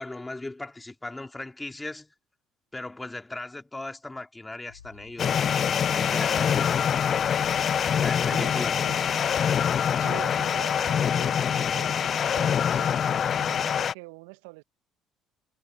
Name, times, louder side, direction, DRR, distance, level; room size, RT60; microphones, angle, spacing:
voice 1, 0.0-2.1 2.7-5.4 5.9-6.9 8.0-8.8, left 2 dB, 15° left, 3.7 m, -37 dB
sound 1, 4.7-9.9, left 8 dB, 85° left, 2.1 m, -51 dB
sound 2, 5.2-13.9, left 8 dB, 45° left, 0.5 m, -25 dB
sound 3, 6.4-13.8, right 12 dB, 55° right, 4.1 m, -58 dB
voice 2, 8.3-9.0 9.8-14.6, right 30 dB, 70° right, 1.5 m, -44 dB
figure-of-eight pair, 55°, 0 cm